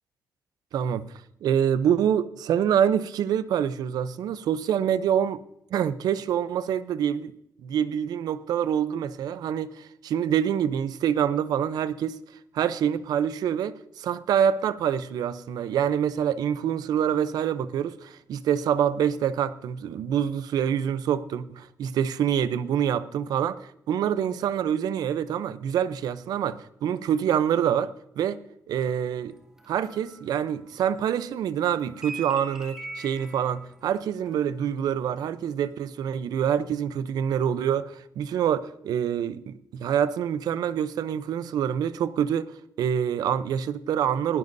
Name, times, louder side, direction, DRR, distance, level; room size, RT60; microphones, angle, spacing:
voice 1, 0.7-1.1 1.4-5.4 5.7-7.3 7.6-12.2 12.5-28.4 28.7-29.3 29.7-42.5 42.8-44.4, right 9 dB, 75° right, 0.7 m, -26 dB
sound 1, 28.8-31.2 31.4-35.1 35.4-35.7, right 2 dB, 10° right, 2.1 m, -44 dB
20.0 x 16.0 x 2.7 m
cardioid pair, 135°, 7 cm